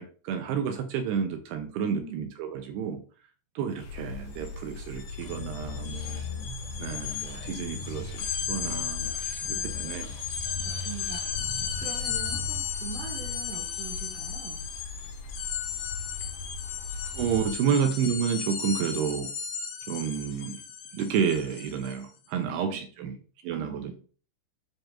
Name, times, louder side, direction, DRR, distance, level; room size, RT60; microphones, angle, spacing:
voice 1, 0.0-3.0 3.6-6.2 6.8-9.1 9.5-10.2 17.1-19.3 19.9-20.6 20.9-23.2 23.4-23.9, right 7 dB, 85° right, 6 dB, 2.4 m, -30 dB
voice 2, 1.8-2.2 8.5-9.2 9.5-9.9 10.6-11.4 11.8-14.7 22.4-23.1 23.5-23.9, right 4 dB, 60° right, -2 dB, 2.3 m, -43 dB
sound 1, 3.8-17.5, left 3 dB, 65° left, 3.7 m, -39 dB
sound 2, 4.3-4.5 4.8-22.0, left 8 dB, 85° left, 3.7 m, -35 dB
sound 3, 5.2-12.6, left 1 dB, 40° left, 2.8 m, -44 dB
11.5 x 4.9 x 2.5 m, 0.39 s
omnidirectional pair, 5.4 m